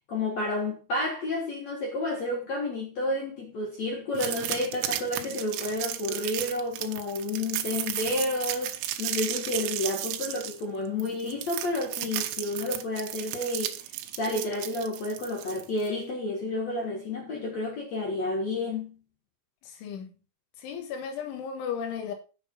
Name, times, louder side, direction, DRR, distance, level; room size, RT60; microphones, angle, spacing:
voice 1, 0.1-18.9, left 2 dB, 60° left, 1.9 m, -31 dB
sound 1, 4.1-15.9, right 13 dB, 85° right, 3.4 m, -34 dB
voice 2, 19.7-20.1 20.6-22.1, left 7 dB, 80° left, 4.0 m, -35 dB
7.9 x 6.9 x 5.4 m
omnidirectional pair, 5.4 m